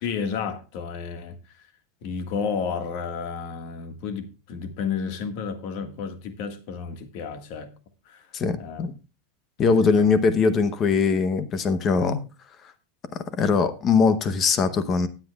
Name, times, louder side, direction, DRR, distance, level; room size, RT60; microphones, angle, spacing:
voice 1, 0.0-1.7 2.0-7.7 8.0-8.3 8.6-8.9 9.6-10.1, left 6 dB, 45° left, 1.7 m, -32 dB
voice 2, 8.3-8.9 9.6-12.2 13.1-15.1, left 5 dB, 20° left, 0.8 m, -21 dB
20.0 x 7.7 x 2.4 m
supercardioid pair, 175°, 0 cm